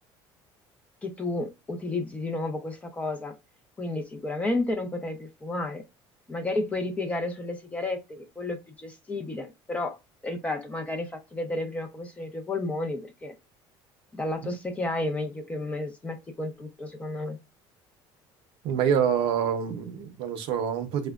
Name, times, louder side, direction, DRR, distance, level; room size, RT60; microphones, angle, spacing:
voice 1, 1.0-3.3 3.8-5.8 6.3-10.0 10.2-13.3 14.1-17.4, left 2 dB, 15° left, 0.5 m, -32 dB
voice 2, 18.6-21.1, right 8 dB, 65° right, 0.6 m, -26 dB
4.7 x 2.1 x 2.3 m
cardioid pair, 165°, 10 cm